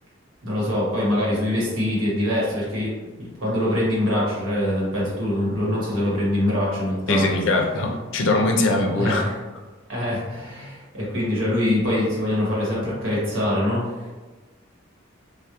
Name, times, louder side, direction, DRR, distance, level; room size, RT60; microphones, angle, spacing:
voice 1, 0.4-2.9 3.2-7.3 9.0-9.3 9.9-13.9, left 1 dB, 85° right, -6 dB, 1.0 m, -24 dB
voice 2, 7.1-9.3, left 2 dB, 65° left, 2 dB, 0.4 m, -21 dB
2.3 x 2.1 x 2.8 m, 1.2 s
head